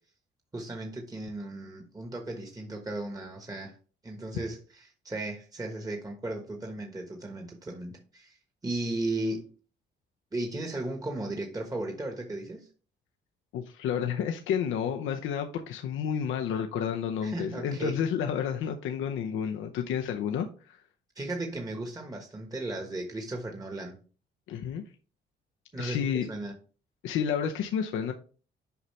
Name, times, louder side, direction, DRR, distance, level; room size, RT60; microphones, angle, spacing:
voice 1, 0.5-3.8 4.0-8.4 8.6-9.5 10.3-12.7 17.2-18.0 21.1-24.0 25.7-26.5, right 2 dB, 20° right, 1.3 m, -35 dB
voice 2, 13.5-20.8 24.5-24.8 25.8-26.3 27.0-28.1, left 8 dB, 80° left, 0.7 m, -30 dB
7.0 x 5.0 x 3.2 m
cardioid pair, 90°, 20 cm